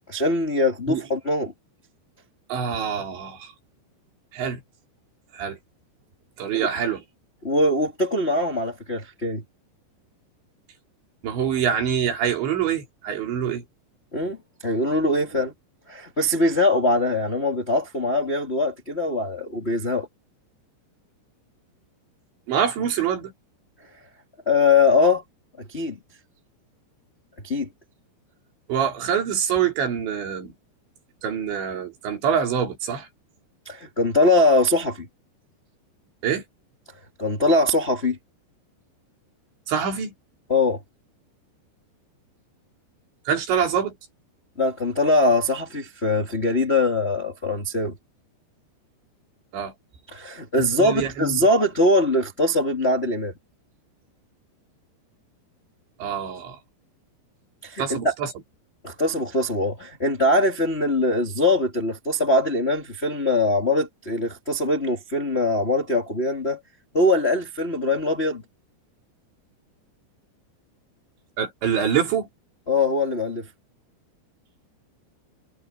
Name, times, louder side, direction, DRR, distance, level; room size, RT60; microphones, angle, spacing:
voice 1, 0.1-1.5 7.4-9.4 14.1-14.4 14.6-15.5 15.9-20.1 24.4-25.2 25.7-26.0 27.4-27.7 33.6-35.1 37.2-38.2 40.5-40.8 44.6-47.9 50.1-53.3 57.6-58.1 58.8-66.6 66.9-68.4 72.7-73.5, left 2 dB, 35° left, 1.0 m, -22 dB
voice 2, 2.5-3.5 4.3-4.6 5.3-5.6 6.4-7.0 11.2-13.6 15.3-15.4 22.5-23.3 28.7-30.5 31.2-33.1 36.2-36.4 39.7-40.1 43.3-43.9 49.5-49.7 50.5-51.4 56.0-56.6 57.8-58.3 71.4-72.3, right 8 dB, 75° right, 6.1 m, -25 dB
omnidirectional pair, 5.2 m